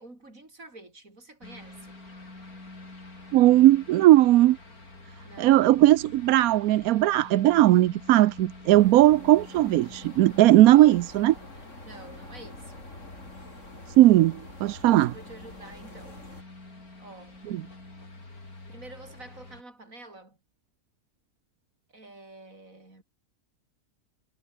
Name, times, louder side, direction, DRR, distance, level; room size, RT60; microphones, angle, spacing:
voice 1, 0.0-2.0 5.2-5.8 10.7-11.1 11.4-12.9 14.9-16.2 17.0-17.4 18.7-20.4 21.9-23.0, right 2 dB, 60° right, 6.2 m, -48 dB
sound 1, 1.4-19.6, left 2 dB, 70° left, 5.7 m, -47 dB
voice 2, 3.3-4.6 5.4-11.3 14.0-15.1 17.5-17.6, right 15 dB, 75° right, 1.0 m, -18 dB
sound 2, 8.7-16.4, left 1 dB, 50° left, 8.0 m, -47 dB
omnidirectional pair, 1.6 m